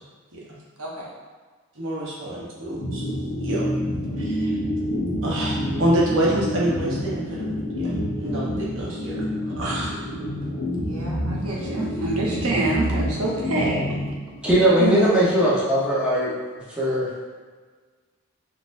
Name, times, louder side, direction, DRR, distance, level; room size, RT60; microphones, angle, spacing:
voice 1, 0.8-1.1 10.8-14.0, right 2 dB, 90° right, -3 dB, 0.8 m, -27 dB
voice 2, 1.8-3.6 4.2-4.5 5.2-7.5 7.7-9.9 14.8-15.4, right 1 dB, 60° right, -5 dB, 0.9 m, -27 dB
sound 1, 2.8-14.7, equal, 75° left, 0.7 m, -28 dB
voice 3, 14.4-16.3 16.8-17.1, right 1 dB, 5° right, -8 dB, 0.8 m, -19 dB
4.1 x 2.5 x 2.6 m, 1.5 s
head